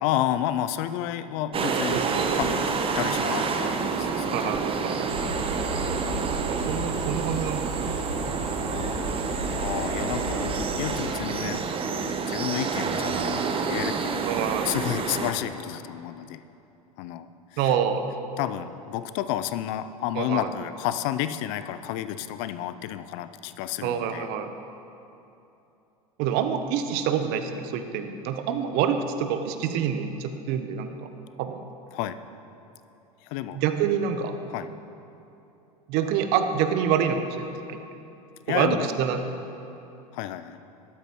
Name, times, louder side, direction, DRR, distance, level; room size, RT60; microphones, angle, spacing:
voice 1, 0.0-2.0 2.3-2.6 3.0-4.5 8.7-9.2 9.6-11.6 12.3-13.3 13.7-16.4 17.0-17.7 18.4-24.3 31.9-32.2 33.2-33.6 34.5-34.7 38.5-38.9 40.1-40.6, left 12 dB, 55° left, 12 dB, 0.5 m, -31 dB
sound 1, 1.5-15.3, right 5 dB, 30° right, 0.9 m, -28 dB
voice 2, 1.9-2.4 4.3-5.1 6.5-8.0 8.3-8.4 14.2-14.7 17.6-18.1 20.1-20.5 23.8-24.5 26.2-31.1 31.4-31.6 33.5-34.3 35.9-37.8 38.5-39.2, right 8 dB, 55° right, 8 dB, 0.9 m, -27 dB
sound 2, 5.1-10.9, right 2 dB, 85° right, 1.3 m, -34 dB
13.5 x 12.0 x 3.0 m, 2.8 s
hypercardioid pair, 85°, 20 cm